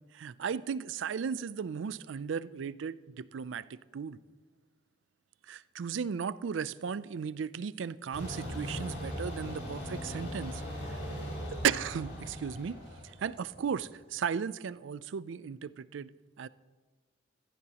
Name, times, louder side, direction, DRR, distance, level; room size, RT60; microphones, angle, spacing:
voice 1, 0.1-4.2 5.5-11.1 11.6-12.8 13.0-16.1 16.4-16.5, right 7 dB, 85° right, 18 dB, 0.4 m, -35 dB
sound 1, 8.1-13.9, equal, 85° left, 5.0 m, -39 dB
16.0 x 14.5 x 2.9 m, 1.3 s
head